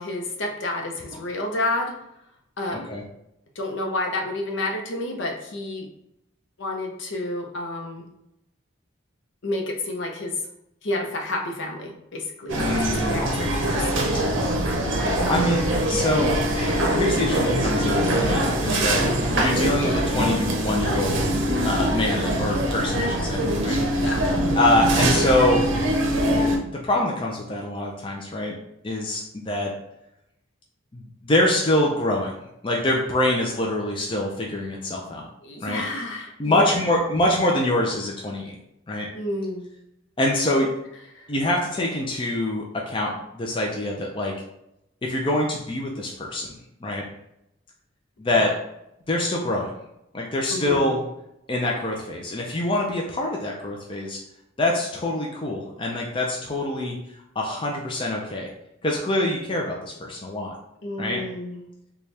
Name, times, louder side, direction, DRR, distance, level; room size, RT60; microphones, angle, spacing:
voice 1, 0.0-1.9 2.6-2.9 3.6-5.9 6.6-8.0 9.4-10.3 10.8-14.2 15.2-15.6 19.1-19.3 24.0-24.2 35.4-36.8 39.1-39.7 41.1-41.3 48.3-48.5 50.5-50.9 60.8-61.6, left 2 dB, 65° left, 2 dB, 0.7 m, -30 dB
voice 2, 2.7-3.0 12.6-13.2 15.1-19.0 19.3-21.2 21.6-23.8 24.6-25.7 26.7-28.6 28.8-29.7 30.9-32.3 32.6-35.3 35.6-35.8 36.4-38.6 38.9-39.1 40.2-40.7 41.3-44.4 45.0-46.5 46.8-47.1 48.2-48.6 49.1-49.7 50.1-51.0 51.5-54.2 54.6-57.0 57.4-58.5 58.8-60.5 61.0-61.3, left 1 dB, 25° left, -1 dB, 0.4 m, -25 dB
sound 1, 12.5-26.6, right 1 dB, 65° right, 0.7 m, -23 dB
4.2 x 2.3 x 3.2 m, 0.82 s
head